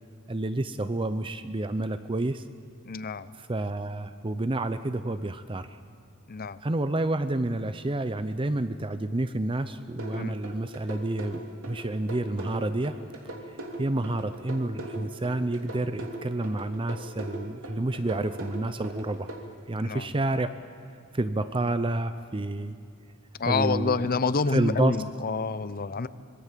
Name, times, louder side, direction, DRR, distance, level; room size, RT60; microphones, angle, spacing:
voice 1, 0.3-2.4 3.3-5.8 6.6-12.9 13.8-19.3 19.7-20.5 21.1-22.8 23.4-24.1 24.5-25.0, right 2 dB, 25° right, 11 dB, 0.6 m, -29 dB
voice 2, 2.8-3.3 6.3-6.6 10.1-10.4 19.7-20.1 23.4-26.1, left 4 dB, 45° left, 15 dB, 0.7 m, -28 dB
sound 1, 10.0-19.4, right 1 dB, 70° right, 3.3 m, -39 dB
26.0 x 21.0 x 7.5 m, 2.5 s
head